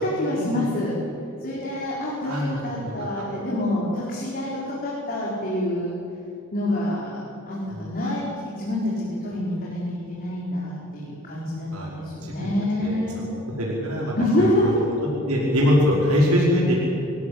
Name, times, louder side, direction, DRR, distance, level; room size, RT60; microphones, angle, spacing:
voice 1, 0.0-0.9 1.4-5.9 6.5-8.3 8.5-13.2 14.2-14.7, left 1 dB, 40° left, -6 dB, 5.2 m, -27 dB
voice 2, 2.2-2.9 7.7-7.8 11.7-11.9 12.2-12.5 12.8-14.1 14.4-14.9 15.3-16.9, equal, 80° right, -4 dB, 5.2 m, -23 dB
26.0 x 16.0 x 8.8 m, 2.8 s
head